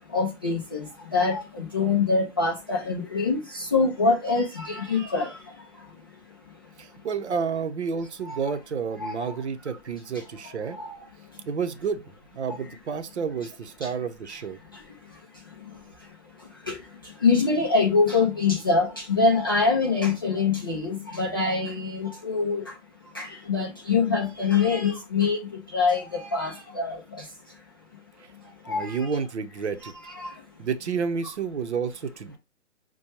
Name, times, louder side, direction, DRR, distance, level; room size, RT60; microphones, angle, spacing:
voice 1, 0.1-6.2 6.5-6.6 8.2-8.4 9.0-9.3 10.7-11.4 13.8-13.9 14.3-14.4 14.7-27.6 28.3-29.1 30.1-30.4, left 4 dB, 20° left, 0.3 m, -26 dB
voice 2, 6.8-10.8 11.5-14.6 28.7-29.9 30.6-32.4, right 6 dB, 65° right, 0.7 m, -30 dB
6.0 x 2.2 x 2.9 m
figure-of-eight pair, 130°, 36 cm